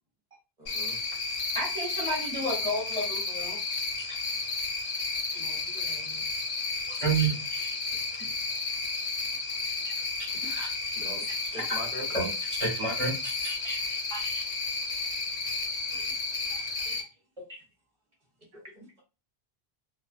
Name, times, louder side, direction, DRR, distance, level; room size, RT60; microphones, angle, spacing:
voice 1, 0.6-1.0 5.3-6.2 10.9-11.2 11.5-12.0 15.9-16.1 16.5-17.0 18.5-19.0, right 1 dB, 45° right, -3 dB, 1.0 m, -44 dB
Cricket, 0.7-17.0, left 3 dB, 60° left, 0.9 m, -32 dB
voice 2, 1.5-3.6 7.0-7.4 10.2-10.7 11.6-11.8 12.1-13.6, right 3 dB, 30° right, -3 dB, 1.1 m, -31 dB
voice 3, 6.9-7.6 9.8-9.9 10.5-11.0 13.6-14.5 17.5-17.6, equal, 5° left, -5 dB, 0.6 m, -42 dB
2.4 x 2.3 x 2.4 m, 0.30 s
omnidirectional pair, 1.1 m